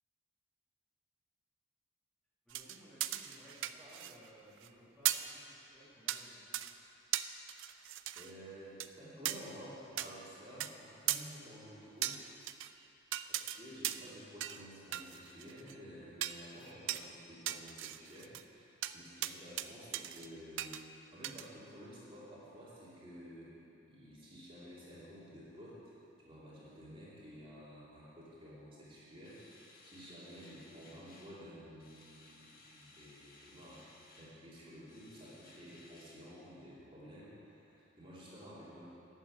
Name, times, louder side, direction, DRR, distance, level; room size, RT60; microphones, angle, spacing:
voice 1, 2.4-6.8, equal, 5° left, -10 dB, 2.8 m, -59 dB
sound 1, 2.5-4.3 4.6-4.7 5.1-5.3 6.1-6.2 6.5-6.7 7.1-8.3 8.8-8.9 9.3-9.4 10.0-10.1 10.6-10.7 11.1-11.2 12.0-12.7 13.1-13.6 13.8-14.1 14.4-14.6 14.9-15.8 16.2-16.4 16.9-17.0 17.5-18.4 18.8-18.9 19.2-19.7 19.9-20.3 20.6-20.8 21.2-21.5, right 13 dB, 65° right, 0.4 m, -37 dB
voice 2, 8.2-12.2 13.3-23.5 23.9-26.0 26.2-33.8 34.1-38.9, equal, 25° right, -8 dB, 2.7 m, -52 dB
sound 2, 29.2-31.5 31.8-34.4 34.9-36.2, left 2 dB, 45° left, 1.5 m, -60 dB
11.5 x 7.3 x 8.6 m, 2.9 s
head